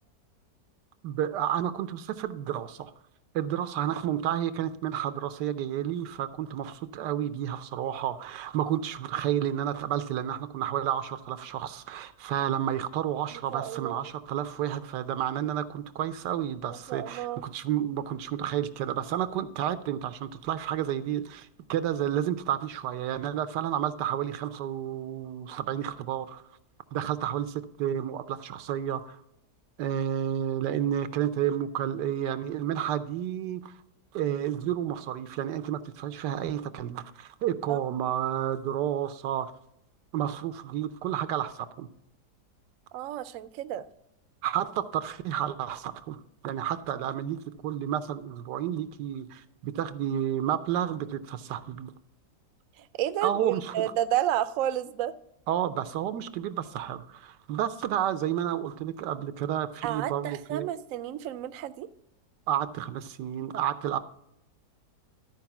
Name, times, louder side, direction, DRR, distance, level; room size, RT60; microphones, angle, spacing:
voice 1, 1.0-2.9 3.3-26.4 26.9-29.2 29.8-33.7 34.1-39.5 40.1-41.9 44.4-51.9 53.2-53.9 55.5-60.7 62.5-64.0, right 10 dB, 90° right, 12 dB, 1.3 m, -31 dB
voice 2, 13.3-14.1 16.9-17.5 37.7-37.9 42.9-43.9 52.8-55.1 59.8-61.9, right 12 dB, 70° right, 12 dB, 0.8 m, -31 dB
12.0 x 4.7 x 5.8 m, 0.80 s
omnidirectional pair, 1.8 m